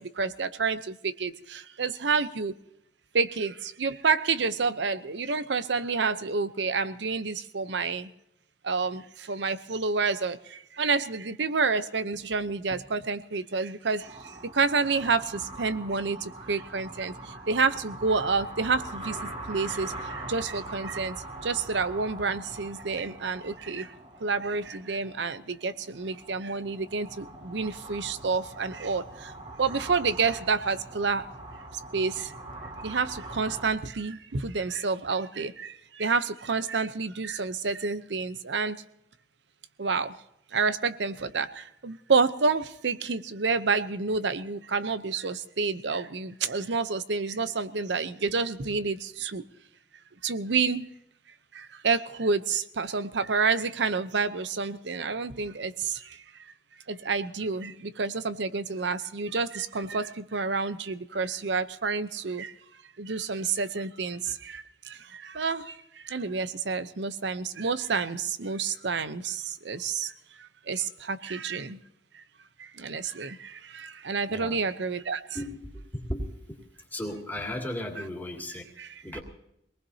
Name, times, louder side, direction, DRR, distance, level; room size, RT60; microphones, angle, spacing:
voice 1, 0.0-2.5 3.1-8.1 8.6-19.2 19.5-21.2 21.4-23.9 24.2-29.3 29.6-31.3 31.9-32.3 32.8-38.8 39.8-40.2 40.5-49.4 50.2-50.9 51.5-56.2 56.9-62.5 63.0-70.1 70.4-71.8 72.1-72.2 72.6-75.4 78.0-78.1 78.5-79.2, right 4 dB, 80° right, 13 dB, 0.7 m, -29 dB
sound 1, 14.0-33.7, right 2 dB, 40° right, 3.4 m, -42 dB
voice 2, 75.3-76.6 76.9-78.6 79.0-79.2, left 1 dB, 10° left, -1 dB, 2.5 m, -35 dB
25.0 x 19.5 x 2.8 m, 0.78 s
head